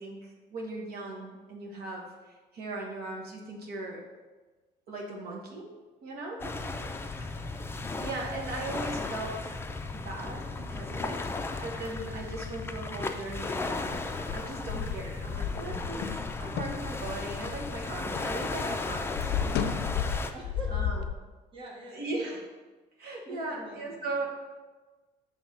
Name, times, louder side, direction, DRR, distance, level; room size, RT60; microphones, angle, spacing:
voice 1, 0.0-4.0 4.9-5.7 6.0-6.4 7.2-7.4 7.7-9.6 9.9-11.3 11.6-14.0 14.3-16.1 16.4-20.0 20.7-21.0 21.9-22.4 23.0-24.3, right 2 dB, 65° right, -1 dB, 1.4 m, -38 dB
sound 1, 6.4-20.3, left 3 dB, 15° left, 0.4 m, -35 dB
voice 2, 6.4-6.8 20.3-20.8 21.5-22.4 23.2-24.2, right 1 dB, 30° right, -1 dB, 1.1 m, -45 dB
sound 2, 14.1-18.3 18.6-21.1, left 8 dB, 80° left, 0.5 m, -33 dB
6.2 x 3.6 x 5.1 m, 1.3 s
cardioid pair, 110°, 17 cm